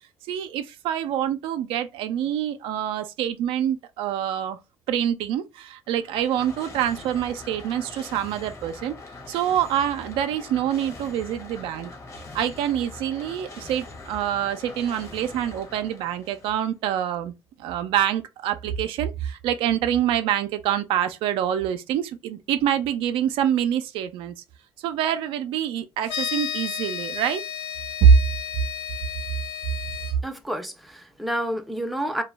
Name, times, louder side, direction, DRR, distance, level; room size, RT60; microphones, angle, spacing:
voice 1, 0.3-4.6 4.9-8.9 9.3-11.9 12.3-17.3 17.6-24.3 24.8-27.4 28.0-28.2, right 9 dB, 80° right, 0.4 m, -25 dB
sound 1, 5.9-16.7, left 3 dB, 35° left, 0.8 m, -42 dB
sound 2, 26.0-30.1, left 9 dB, 85° left, 0.6 m, -32 dB
voice 2, 30.2-32.2, right 1 dB, ahead, 0.5 m, -29 dB
2.2 x 2.0 x 3.3 m
cardioid pair, 85°, 9 cm